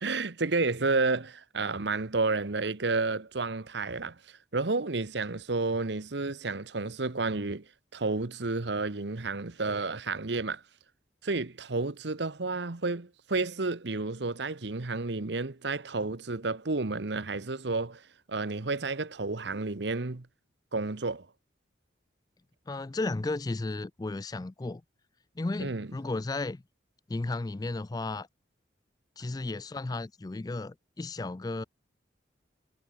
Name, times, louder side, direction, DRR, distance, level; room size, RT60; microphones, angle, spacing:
voice 1, 0.0-7.7 7.9-10.6 11.2-18.0 18.3-20.3 20.7-21.3 25.6-25.9, right 3 dB, 65° right, 1.1 m, -31 dB
voice 2, 22.7-24.8 25.4-26.6 27.1-28.3 29.2-31.6, left 2 dB, 20° left, 0.3 m, -34 dB
head